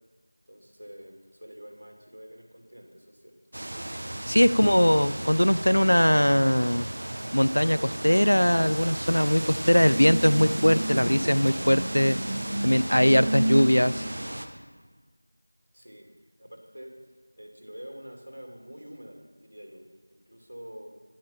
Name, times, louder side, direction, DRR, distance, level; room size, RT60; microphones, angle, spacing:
voice 1, 0.5-3.3 15.7-16.1 16.4-16.9 17.4-20.9, equal, 65° right, 1 dB, 2.5 m, -46 dB
sound 1, 3.5-14.5, right 1 dB, 25° right, 0.5 m, -32 dB
voice 2, 4.3-6.9 7.3-12.2 12.6-14.0, equal, 90° left, 15 dB, 0.4 m, -21 dB
10.5 x 10.0 x 4.4 m, 1.4 s
figure-of-eight pair, 180°, 0 cm